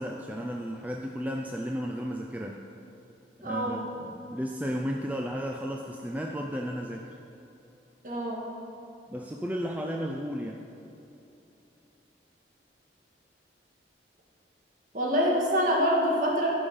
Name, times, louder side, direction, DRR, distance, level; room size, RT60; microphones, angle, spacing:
voice 1, 0.0-2.6 3.4-7.2 9.1-10.7, equal, 10° right, 1 dB, 0.4 m, -34 dB
voice 2, 3.4-3.8 8.0-8.5 14.9-16.5, equal, 45° right, -2 dB, 1.8 m, -25 dB
12.0 x 5.6 x 5.4 m, 2.9 s
head